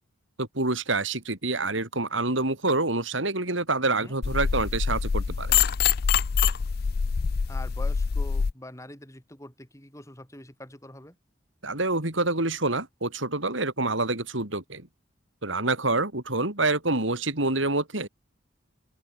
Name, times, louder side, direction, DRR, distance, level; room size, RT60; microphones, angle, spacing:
voice 1, 0.4-5.5 11.6-14.9 15.4-18.1, right 2 dB, 75° right, 4.6 m, -27 dB
voice 2, 3.9-4.2 7.5-11.2, left 1 dB, 15° left, 7.7 m, -44 dB
sound 1, 4.2-8.5, left 6 dB, 50° left, 0.4 m, -25 dB
open air
head